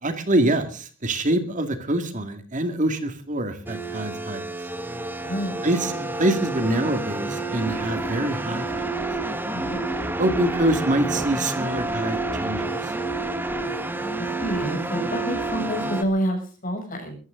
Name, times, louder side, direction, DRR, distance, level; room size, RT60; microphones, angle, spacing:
voice 1, 0.0-4.4 5.6-8.9 10.1-13.0, right 1 dB, 40° right, 8 dB, 2.2 m, -25 dB
sound 1, 3.7-16.0, right 2 dB, 10° right, 1.6 m, -29 dB
voice 2, 5.2-5.6 9.5-9.8 14.2-17.2, equal, 45° left, 4 dB, 7.3 m, -28 dB
23.5 x 14.5 x 3.8 m, 0.40 s
head